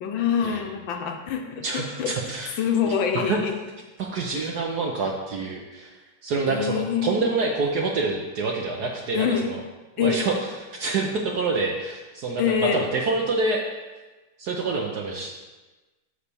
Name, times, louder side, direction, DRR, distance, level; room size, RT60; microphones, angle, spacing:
voice 1, 0.0-2.1 2.6-3.5 4.3-4.4 6.5-7.2 9.1-9.4 10.0-10.2 12.4-12.9, left 7 dB, 70° left, 4 dB, 1.3 m, -25 dB
voice 2, 1.6-3.4 4.0-5.9 6.2-9.6 10.0-13.6 14.4-15.4, right 3 dB, 65° right, 1 dB, 1.0 m, -27 dB
9.7 x 3.3 x 6.8 m, 1.2 s
omnidirectional pair, 2.4 m